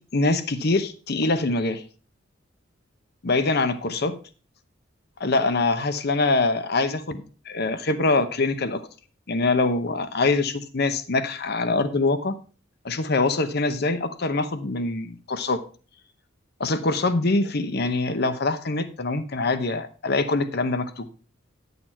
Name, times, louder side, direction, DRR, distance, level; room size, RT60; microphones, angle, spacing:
voice 1, 0.1-1.8 3.2-4.2 5.2-8.8 9.3-12.4 12.8-15.6 16.6-21.1, left 3 dB, 55° left, 11 dB, 0.9 m, -24 dB
10.5 x 6.8 x 4.3 m, 0.37 s
head